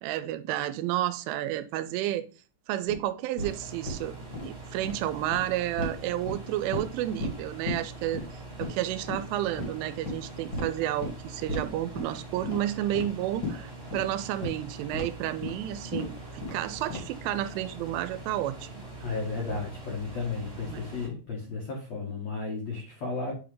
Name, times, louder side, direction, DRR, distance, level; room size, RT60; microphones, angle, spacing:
voice 1, 0.0-2.3 2.7-4.2 4.4-8.2 8.6-18.7 20.6-20.8, right 13 dB, 85° right, 2.9 m, -31 dB
sound 1, 2.9-3.0 3.4-3.5 3.9-4.0 4.3-4.4 4.7-4.9 5.3-5.4 5.8-5.9 6.3-6.9 7.2-7.3 7.7-7.8 8.1-8.2 8.6-8.8 9.1-9.2 9.6-9.7 10.0-10.2 10.5-10.6 11.0-11.1 11.5-11.6 12.0-12.1 12.4-12.6 12.9-13.1 13.4-13.6 13.9-14.0 14.4-14.5 14.9-15.0 15.4-15.5 15.9-16.0 16.4-16.6 16.9-17.2, left 2 dB, 55° left, 1.3 m, -33 dB
sound 2, 3.4-21.1, right 2 dB, 25° right, 0.5 m, -43 dB
voice 2, 19.0-23.3, left 4 dB, 80° left, 1.5 m, -33 dB
8.9 x 3.9 x 3.4 m
omnidirectional pair, 5.7 m